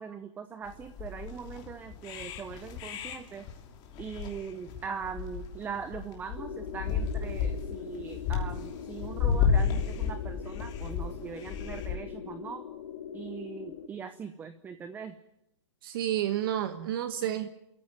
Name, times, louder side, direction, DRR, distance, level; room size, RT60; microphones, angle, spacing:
voice 1, 0.0-3.4 4.0-12.6 13.1-15.1, right 6 dB, 10° right, 11 dB, 0.8 m, -41 dB
sound 1, 0.7-12.0, left 6 dB, 30° left, 3.0 m, -32 dB
sound 2, 6.4-13.9, left 8 dB, 65° left, 2.6 m, -42 dB
voice 2, 15.8-17.5, right 11 dB, 50° right, 9 dB, 1.3 m, -30 dB
27.5 x 14.0 x 9.3 m, 0.87 s
hypercardioid pair, 155°, 15 cm